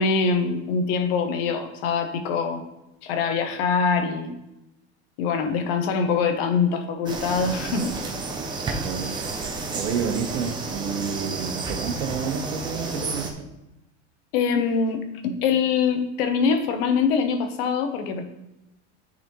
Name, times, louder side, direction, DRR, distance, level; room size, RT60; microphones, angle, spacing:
voice 1, 0.0-2.6 3.0-4.3 5.2-7.9 14.3-18.2, left 5 dB, 55° left, 7 dB, 0.9 m, -24 dB
sound 1, 7.1-13.3, right 3 dB, 15° right, 0.6 m, -31 dB
voice 2, 8.7-9.2 9.7-13.3, right 6 dB, 85° right, 4 dB, 1.3 m, -30 dB
9.9 x 4.1 x 3.1 m, 0.92 s
supercardioid pair, 160°, 34 cm